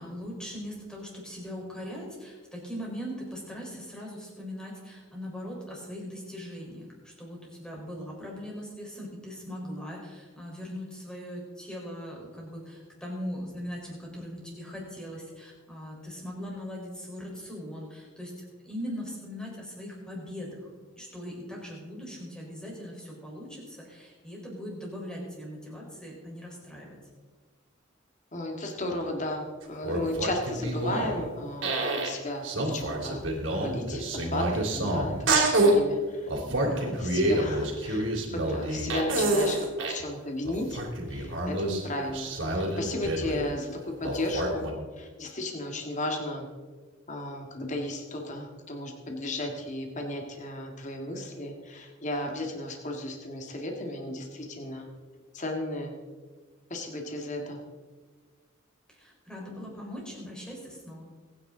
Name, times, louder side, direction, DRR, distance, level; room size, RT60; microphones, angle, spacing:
voice 1, 0.0-20.7 21.0-27.0 36.4-36.9 58.9-61.0, equal, 5° left, -3 dB, 4.4 m, -40 dB
voice 2, 28.3-35.2 35.4-36.3 36.8-40.8 41.1-44.7 45.0-46.5 47.1-54.9 55.3-55.9 56.7-57.6, left 1 dB, 35° left, 2 dB, 1.8 m, -34 dB
sound 1, 29.6-31.2 31.6-32.1 32.4-35.8 36.3-40.0 40.4-43.5 44.0-44.7, right 2 dB, 65° right, 3.3 m, -27 dB
24.0 x 10.0 x 3.9 m, 1.4 s
head